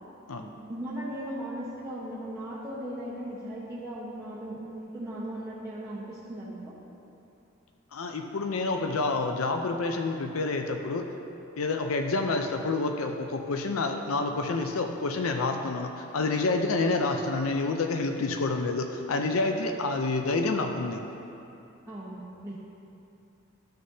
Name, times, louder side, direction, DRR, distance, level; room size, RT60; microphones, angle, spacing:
voice 1, 0.4-6.8 21.9-22.5, right 1 dB, 15° right, -11 dB, 1.1 m, -37 dB
voice 2, 7.9-11.1 11.5-21.0, left 3 dB, 90° left, 4 dB, 0.5 m, -28 dB
12.5 x 6.4 x 2.7 m, 2.8 s
head